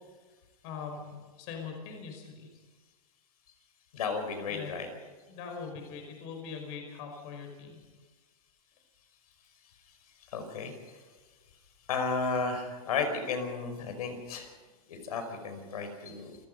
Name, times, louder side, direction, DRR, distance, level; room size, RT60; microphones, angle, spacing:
voice 1, 0.6-2.5 4.5-4.8 5.3-7.8, left 5 dB, 45° left, 3 dB, 5.2 m, -42 dB
voice 2, 3.9-4.9 10.3-10.7 11.9-14.5 14.9-16.4, left 4 dB, 75° left, 7 dB, 5.3 m, -33 dB
28.5 x 17.0 x 5.5 m, 1.4 s
hypercardioid pair, 145°, 19 cm